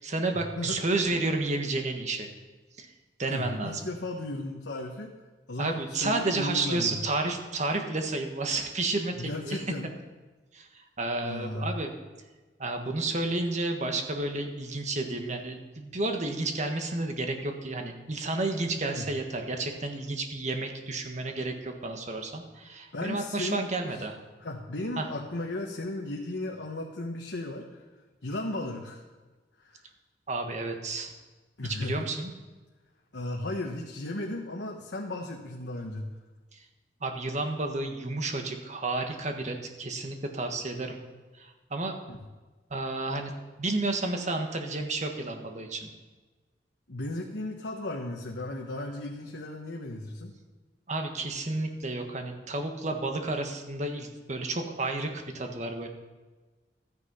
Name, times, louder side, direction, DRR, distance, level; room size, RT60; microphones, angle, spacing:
voice 1, 0.0-2.3 2.8-2.9 3.2-3.8 5.6-9.6 10.5-11.9 12.6-24.2 25.0-25.1 30.3-31.1 31.6-32.3 36.5-36.6 37.0-41.0 41.4-42.0 42.7-43.3 43.6-45.9 50.9-55.9, right 2 dB, 40° right, 4 dB, 1.5 m, -31 dB
voice 2, 3.3-5.1 5.5-7.0 9.2-9.9 11.2-11.7 19.0-19.1 22.9-24.1 24.4-27.8 28.2-29.0 29.6-29.8 31.6-32.1 33.1-36.1 42.1-42.2 46.9-50.3, left 1 dB, 80° left, 0 dB, 1.2 m, -35 dB
13.5 x 9.7 x 5.6 m, 1.3 s
head